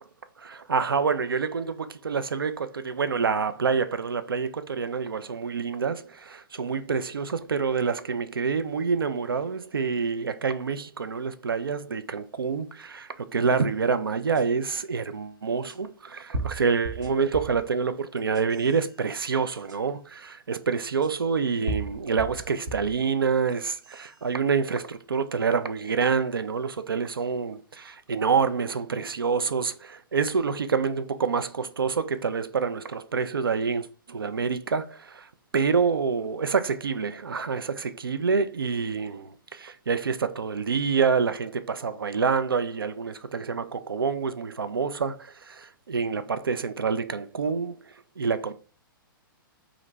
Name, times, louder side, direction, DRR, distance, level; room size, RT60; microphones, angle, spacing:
voice 1, 0.4-47.8 48.2-48.5, right 5 dB, 80° right, 0.4 m, -27 dB
sound 1, 14.4-14.5 15.7-15.8 16.3-17.6 18.2-18.7 19.7-19.8 21.0-21.1 21.7-23.0 23.5-24.1, right 2 dB, 60° right, 0.8 m, -34 dB
2.9 x 2.5 x 3.1 m
figure-of-eight pair, 110°, 12 cm